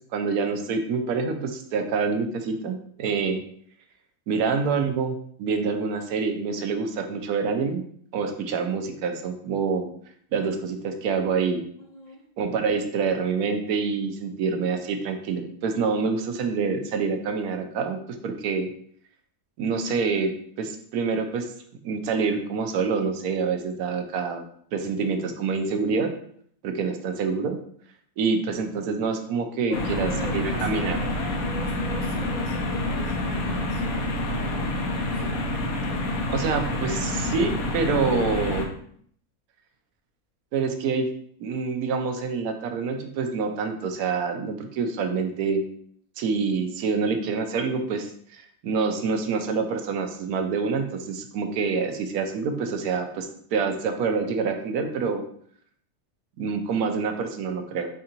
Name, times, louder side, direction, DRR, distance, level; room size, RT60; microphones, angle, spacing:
voice 1, 0.1-3.4 4.3-7.8 8.1-9.9 10.3-11.7 12.4-18.0 18.2-18.7 19.6-20.3 20.6-21.5 21.8-24.4 24.7-26.1 26.6-27.6 28.2-31.0 36.3-38.7 40.5-41.1 41.4-45.6 46.2-55.2 56.4-57.9, right 5 dB, 85° right, 6 dB, 1.1 m, -26 dB
voice 2, 11.9-12.2 29.7-35.4, equal, 35° left, -4 dB, 0.7 m, -41 dB
sound 1, 29.7-38.6, left 1 dB, 75° left, 1.1 m, -28 dB
4.4 x 3.7 x 2.8 m, 0.63 s
omnidirectional pair, 1.5 m